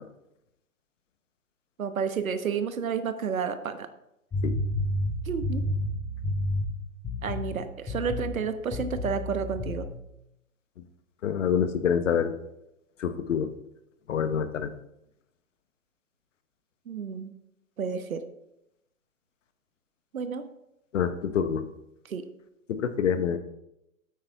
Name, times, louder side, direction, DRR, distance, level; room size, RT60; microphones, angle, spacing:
voice 1, 1.8-3.9 5.3-5.6 7.2-9.9 16.9-17.3 17.8-18.2 20.1-20.4 22.1-22.2, right 6 dB, 75° right, 10 dB, 1.1 m, -31 dB
sound 1, 4.3-6.7 7.0-7.6 7.9-8.4 8.7-9.9, left 1 dB, 10° left, 1.0 m, -30 dB
voice 2, 11.2-12.3 13.0-13.5 14.1-14.7 20.9-21.6 22.7-23.4, left 7 dB, 60° left, 11 dB, 1.0 m, -26 dB
9.3 x 8.5 x 3.5 m, 0.85 s
hypercardioid pair, 130°, 42 cm